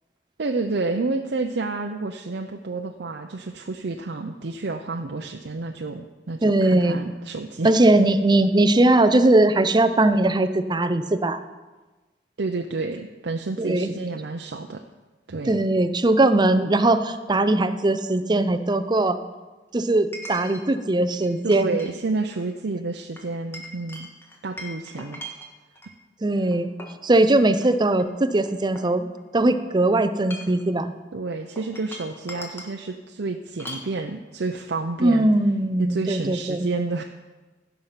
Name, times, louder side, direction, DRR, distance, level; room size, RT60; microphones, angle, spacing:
voice 1, 0.4-7.7 12.4-14.8 15.3-15.6 21.4-24.1 24.4-25.2 31.1-35.3 35.8-37.0, right 3 dB, 65° right, 3 dB, 0.6 m, -29 dB
voice 2, 6.4-7.0 7.6-11.4 13.6-13.9 15.5-19.2 19.7-21.7 26.2-26.7 27.0-30.9 35.0-36.7, right 2 dB, 25° right, 10 dB, 0.6 m, -20 dB
Chink clink, 16.7-16.8 20.1-20.6 21.1-21.9 22.2-22.5 23.2-25.9 26.5-27.0 27.5-27.7 28.0-29.4 30.1-30.7 31.6-32.8 33.6-33.9, equal, 15° left, 1.4 m, -40 dB
16.0 x 5.8 x 5.8 m, 1.2 s
head